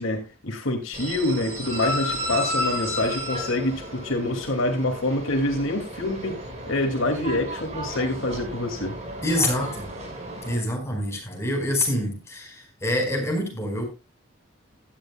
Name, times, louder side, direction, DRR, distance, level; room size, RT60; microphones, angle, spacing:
voice 1, 0.0-6.4 6.7-9.0, left 1 dB, 70° left, 3 dB, 2.5 m, -26 dB
sound 1, 0.9-10.6, left 1 dB, 35° right, 5.3 m, -33 dB
voice 2, 9.2-9.9 10.4-13.9, left 1 dB, 15° left, 0 dB, 4.9 m, -26 dB
16.0 x 11.5 x 2.3 m, 0.27 s
head